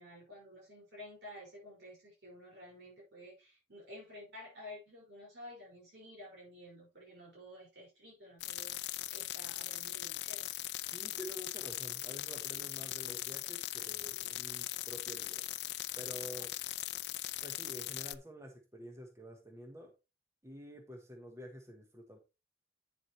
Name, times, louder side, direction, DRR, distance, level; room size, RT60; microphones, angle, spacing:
voice 1, 0.0-10.5, left 1 dB, 70° right, 5.2 m, -52 dB
sound 1, 8.4-18.2, left 15 dB, 70° left, 0.5 m, -40 dB
voice 2, 10.9-15.4 16.0-16.5 17.4-19.9 20.4-22.2, equal, 15° right, 1.1 m, -49 dB
9.2 x 7.3 x 3.1 m
head